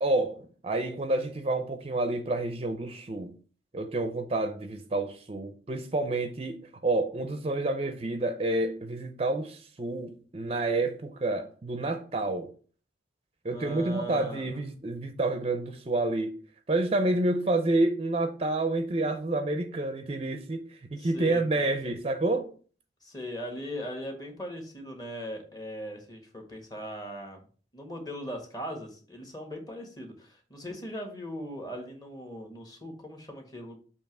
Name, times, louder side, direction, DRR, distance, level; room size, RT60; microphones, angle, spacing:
voice 1, 0.0-3.3 3.7-12.5 13.4-16.4 16.7-22.5, right 2 dB, 35° right, 0.5 m, -29 dB
voice 2, 13.5-14.6 21.0-21.9 23.0-27.4 27.7-33.8, equal, 25° left, 1.5 m, -39 dB
6.9 x 2.9 x 5.9 m
head